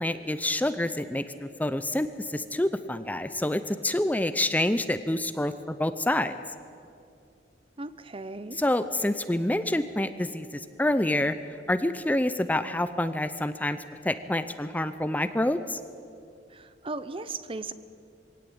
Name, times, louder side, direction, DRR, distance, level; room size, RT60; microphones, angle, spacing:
voice 1, 0.0-6.4 8.5-11.3 11.7-13.8 14.0-15.8, left 1 dB, 10° left, 11 dB, 0.6 m, -27 dB
voice 2, 7.8-8.6 16.5-17.7, right 3 dB, 30° right, 13 dB, 0.8 m, -37 dB
23.0 x 17.5 x 8.8 m, 2.5 s
head